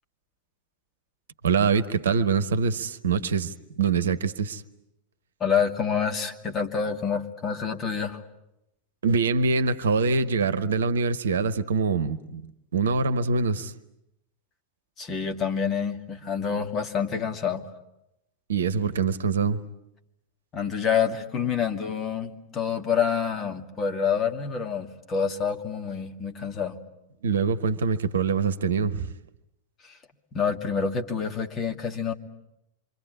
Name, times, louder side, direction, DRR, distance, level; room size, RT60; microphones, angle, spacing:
voice 1, 1.4-4.6 9.0-13.7 18.5-19.6 27.2-29.1, right 5 dB, 65° right, 1.1 m, -24 dB
voice 2, 5.4-8.2 15.0-17.6 20.5-26.8 29.8-30.0 30.3-32.1, left 6 dB, 25° left, 2.5 m, -27 dB
27.5 x 25.0 x 8.4 m
figure-of-eight pair, 90°, 0 cm